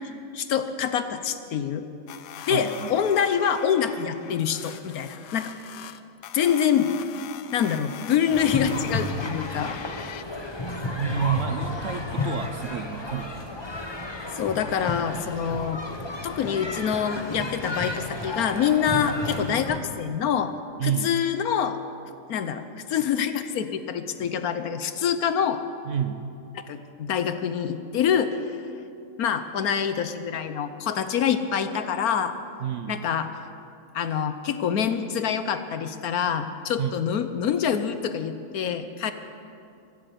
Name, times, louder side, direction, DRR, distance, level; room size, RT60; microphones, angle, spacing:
voice 1, 0.3-1.9 2.5-5.5 6.3-6.9 7.5-9.8 14.3-15.8 16.2-20.5 20.8-21.8 22.3-25.6 26.5-28.4 29.2-32.3 32.9-33.3 33.9-39.1, left 8 dB, 65° left, 10 dB, 1.2 m, -26 dB
sound 1, 2.1-10.2, left 10 dB, 85° left, 1.2 m, -42 dB
voice 2, 2.4-2.9 10.9-13.5 20.8-21.1 25.8-26.3 32.6-33.1 36.8-36.9, right 9 dB, 60° right, 8 dB, 0.9 m, -29 dB
sound 2, 8.3-19.8, left 2 dB, 20° left, 1.0 m, -32 dB
14.5 x 12.5 x 7.8 m, 2.6 s
omnidirectional pair, 1.8 m